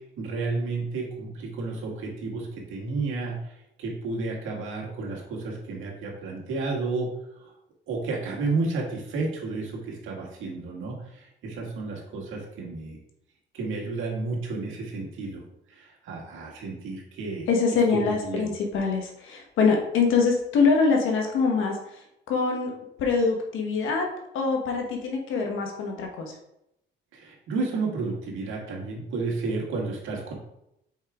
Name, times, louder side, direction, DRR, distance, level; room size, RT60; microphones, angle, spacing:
voice 1, 0.2-3.4 3.8-7.1 7.9-13.0 13.5-15.4 15.7-17.5 17.9-18.5 27.1-30.3, right 3 dB, 85° right, -2 dB, 1.8 m, -31 dB
voice 2, 17.5-21.8 22.3-22.7 23.0-24.1 24.3-26.3, left 4 dB, 85° left, 2 dB, 1.2 m, -24 dB
5.4 x 4.9 x 3.5 m, 0.82 s
cardioid pair, 90°, 20 cm